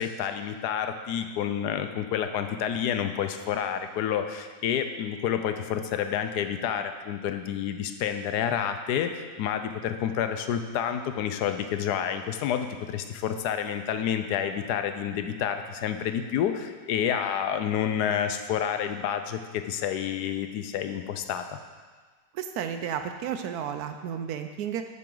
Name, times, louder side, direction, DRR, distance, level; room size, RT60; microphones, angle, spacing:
voice 1, 0.0-21.4, left 9 dB, 70° left, 8 dB, 1.1 m, -29 dB
voice 2, 22.3-24.9, right 8 dB, 70° right, 8 dB, 0.9 m, -32 dB
9.7 x 7.6 x 3.9 m, 1.5 s
omnidirectional pair, 1.9 m